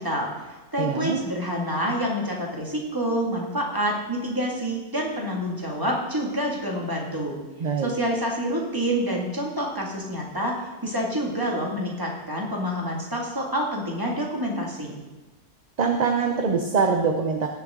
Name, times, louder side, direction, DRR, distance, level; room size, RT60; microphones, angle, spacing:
voice 1, 0.0-7.4 7.8-15.0, equal, 15° right, -1 dB, 2.1 m, -27 dB
voice 2, 0.8-1.2 7.6-7.9 15.8-17.5, right 5 dB, 40° right, 4 dB, 0.8 m, -23 dB
18.0 x 6.8 x 3.8 m, 1.1 s
omnidirectional pair, 1.3 m